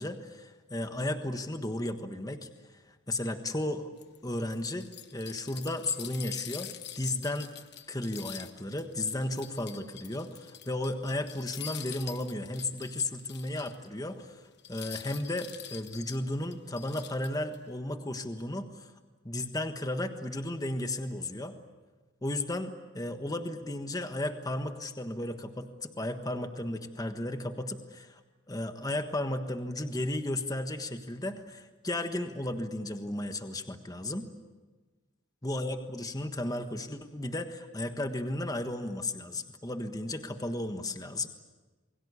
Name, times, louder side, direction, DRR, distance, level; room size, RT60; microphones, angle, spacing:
voice 1, 0.0-2.5 2.9-3.9 4.2-4.9 5.1-6.7 7.0-7.5 7.9-14.4 14.7-18.9 19.2-21.5 22.2-28.2 28.5-34.3 35.4-41.3, left 1 dB, 20° left, 7 dB, 1.4 m, -34 dB
sound 1, 4.0-13.9 14.2-14.3 14.6-17.6, left 10 dB, 55° left, 1.2 m, -45 dB
28.5 x 22.0 x 8.3 m, 1.3 s
head